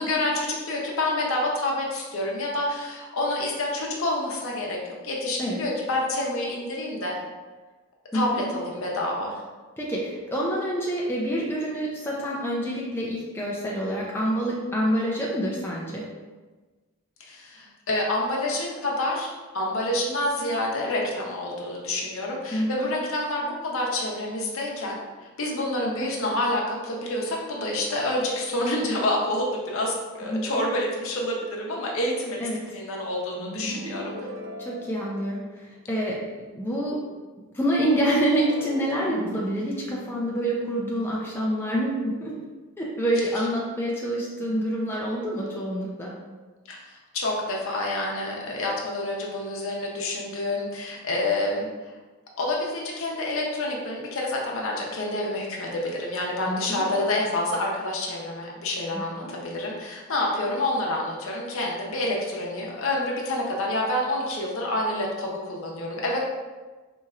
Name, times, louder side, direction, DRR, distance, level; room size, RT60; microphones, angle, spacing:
voice 1, 0.0-7.2 8.1-9.5 17.2-25.0 25.4-32.4 32.7-34.1 46.7-51.7 52.4-66.2, left 1 dB, 65° left, -2 dB, 0.7 m, -28 dB
voice 2, 8.1-8.4 9.8-16.0 22.5-22.9 30.3-30.7 32.4-32.6 34.6-36.2 36.5-37.0 37.5-42.4 42.8-46.1 56.5-56.9 58.9-59.3, right 1 dB, 10° left, -5 dB, 0.4 m, -27 dB
sound 1, 33.4-35.8 38.2-41.5, equal, 60° right, 0.4 m, -38 dB
4.2 x 2.9 x 2.4 m, 1.3 s
head